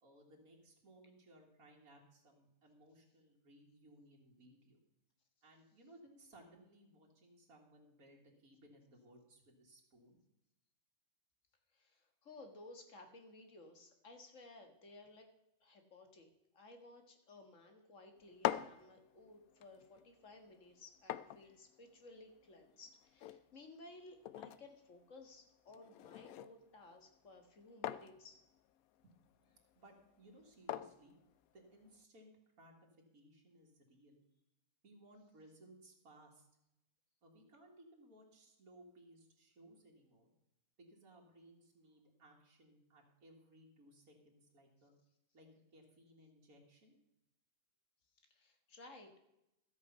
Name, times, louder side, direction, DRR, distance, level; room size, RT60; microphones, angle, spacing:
voice 1, 0.0-4.8 5.4-10.2 29.0-29.1 29.7-31.2 31.5-32.3 32.6-32.9 33.1-34.2 34.8-36.5 37.2-40.3 40.8-44.9 45.3-47.0, right 1 dB, 80° right, -2 dB, 2.4 m, -62 dB
voice 2, 11.7-15.3 15.6-28.4 48.3-49.2, left 2 dB, 60° left, 5 dB, 2.0 m, -57 dB
sound 1, 18.2-32.0, left 12 dB, 80° left, 1.0 m, -47 dB
13.0 x 8.4 x 5.5 m, 0.87 s
omnidirectional pair, 1.5 m